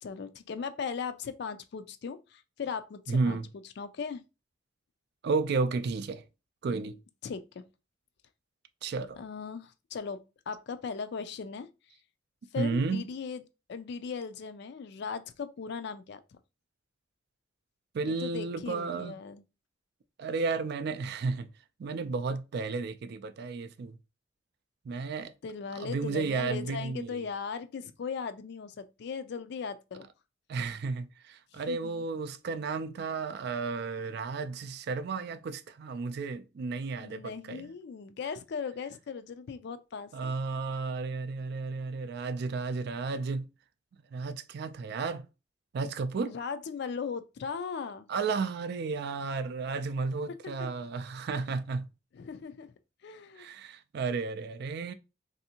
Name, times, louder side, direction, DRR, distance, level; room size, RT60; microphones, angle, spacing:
voice 1, 0.0-3.4 3.8-4.2 7.2-7.6 9.2-11.7 12.5-13.4 13.7-16.2 18.0-19.4 25.4-30.1 31.5-32.0 37.0-40.3 46.3-48.1 50.6-50.7 52.1-52.7 53.0-53.5, left 5 dB, 60° left, 0.3 m, -38 dB
voice 2, 3.1-3.5 5.2-6.2 6.6-7.0 8.8-9.2 12.6-13.0 17.9-19.2 20.2-21.5 21.8-24.0 24.8-25.3 25.8-27.2 30.5-37.7 40.1-43.5 44.1-45.3 45.7-46.3 48.1-51.9 53.4-54.9, right 4 dB, 55° right, 0.3 m, -33 dB
3.3 x 2.6 x 2.7 m
head